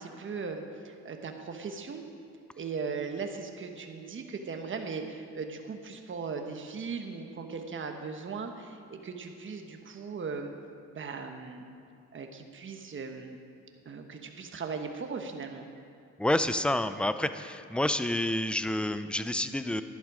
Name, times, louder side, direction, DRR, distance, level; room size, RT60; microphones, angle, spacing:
voice 1, 0.0-2.0 2.6-10.5 10.9-11.7 12.1-13.4 13.8-15.7, right 5 dB, 40° right, 4 dB, 1.3 m, -38 dB
voice 2, 16.2-19.8, left 1 dB, 5° left, 11 dB, 0.5 m, -29 dB
11.0 x 11.0 x 4.9 m, 2.6 s
cardioid pair, 90°, 30 cm